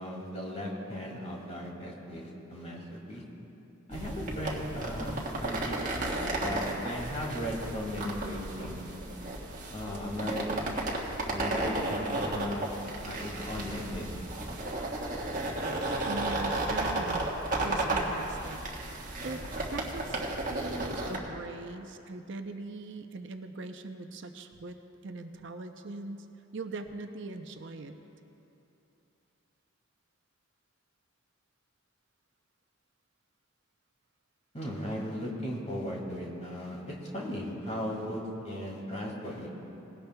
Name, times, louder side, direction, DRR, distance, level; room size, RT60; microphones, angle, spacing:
voice 1, 0.0-3.2 3.9-5.1 5.4-8.8 9.7-10.4 11.3-12.7 13.0-14.1 34.5-38.2 38.4-39.5, equal, 30° left, -3 dB, 2.3 m, -37 dB
sound 1, 3.9-21.2, right 2 dB, 35° right, 1.5 m, -33 dB
voice 2, 16.0-18.9 19.2-19.4 19.7-20.2 20.5-24.8 25.0-26.3 26.5-27.9, right 3 dB, 55° right, 6 dB, 0.6 m, -41 dB
20.0 x 17.0 x 2.3 m, 2.9 s
head